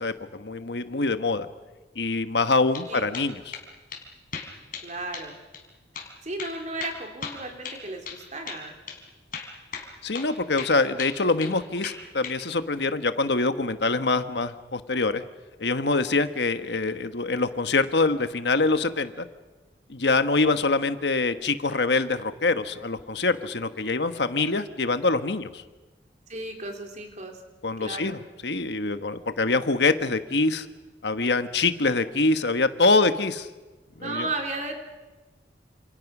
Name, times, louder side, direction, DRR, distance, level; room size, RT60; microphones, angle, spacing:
voice 1, 0.0-1.5 2.0-3.6 10.0-15.2 15.6-19.3 19.9-25.6 27.6-30.7 31.0-33.5 34.0-34.3, left 3 dB, 70° left, 10 dB, 1.3 m, -24 dB
sound 1, 2.7-2.9 3.1-3.7 3.9-4.0 4.3-4.9 5.1-5.3 5.5-5.6 6.0-6.1 6.4-8.2 8.5-8.6 8.9-9.0 9.3-10.3 10.6-11.6 11.8-12.4, left 6 dB, 50° left, 4.3 m, -37 dB
voice 2, 4.8-5.3 6.2-8.7 26.3-27.4 27.8-28.2 34.0-34.8, right 2 dB, 45° right, 3 dB, 3.8 m, -34 dB
28.5 x 27.5 x 6.1 m, 1.2 s
head